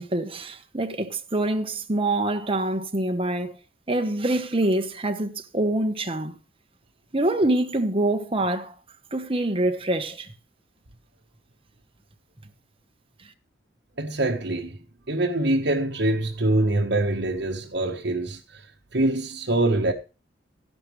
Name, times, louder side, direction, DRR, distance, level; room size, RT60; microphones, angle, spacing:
voice 1, 0.0-3.6 3.9-6.4 7.1-8.7 9.1-10.3, right 1 dB, 30° right, 1.3 m, -25 dB
voice 2, 14.0-14.8 15.1-18.6 18.9-19.9, right 2 dB, 65° right, 1.5 m, -24 dB
14.0 x 11.5 x 3.3 m
head